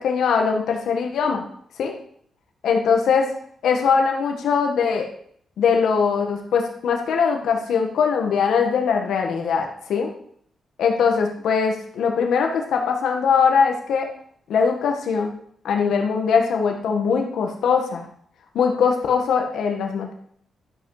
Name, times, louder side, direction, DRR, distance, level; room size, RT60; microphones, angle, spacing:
voice 1, 0.0-1.4 1.8-1.9 2.6-3.3 3.6-5.1 5.6-10.1 10.8-14.1 14.5-15.3 15.6-18.1 18.5-20.1, left 6 dB, 85° left, 2 dB, 1.7 m, -21 dB
12.5 x 8.3 x 5.0 m, 0.64 s
cardioid pair, 115°, 0 cm